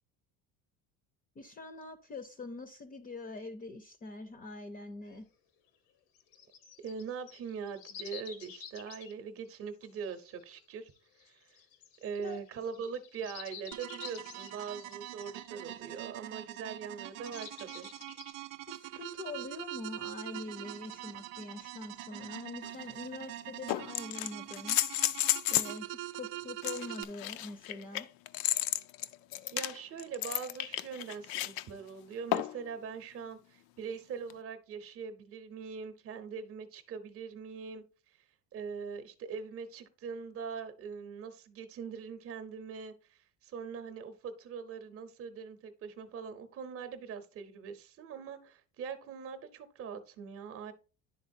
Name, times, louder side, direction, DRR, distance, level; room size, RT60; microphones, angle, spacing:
voice 1, 1.4-5.3 12.2-12.4 18.7-24.8 25.5-28.1, left 3 dB, 25° left, 0.6 m, -44 dB
sound 1, 5.0-5.1 6.2-9.1 10.1-16.8 17.2-18.3, left 7 dB, 85° left, 1.1 m, -50 dB
voice 2, 6.8-10.9 11.2-11.6 12.0-17.9 29.5-38.2 38.5-50.7, right 6 dB, 35° right, 0.8 m, -42 dB
sound 2, 13.7-27.0, right 15 dB, 90° right, 0.6 m, -44 dB
sound 3, 22.6-22.7 23.7-25.8 26.6-31.6 32.3-32.7 34.3-34.4, left 14 dB, 65° left, 0.5 m, -32 dB
10.5 x 3.8 x 2.6 m
cardioid pair, 140°, 39 cm